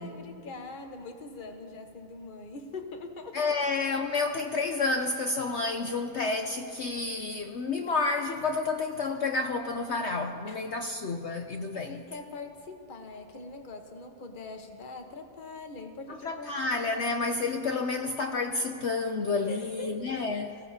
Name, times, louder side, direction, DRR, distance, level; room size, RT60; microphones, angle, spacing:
voice 1, 0.0-3.4 10.5-10.8 11.7-16.5 16.9-17.2 19.4-20.0, left 3 dB, 35° left, 4 dB, 1.0 m, -43 dB
voice 2, 3.3-12.0 16.2-20.6, left 3 dB, 75° left, 5 dB, 0.6 m, -30 dB
24.0 x 16.5 x 2.8 m, 2.5 s
omnidirectional pair, 1.9 m